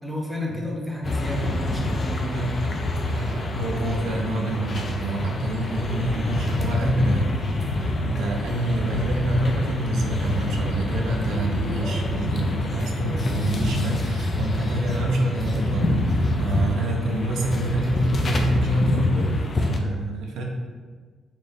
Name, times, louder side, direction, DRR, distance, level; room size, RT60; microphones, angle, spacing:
voice 1, 0.0-2.5, left 1 dB, ahead, -3 dB, 0.9 m, -31 dB
sound 1, 1.0-19.8, left 1 dB, 40° left, 0.5 m, -26 dB
voice 2, 2.3-2.8 3.1-7.4 7.6-20.4, right 1 dB, 80° right, 0 dB, 0.5 m, -27 dB
4.0 x 2.5 x 3.4 m, 1.5 s
cardioid pair, 90°, 0 cm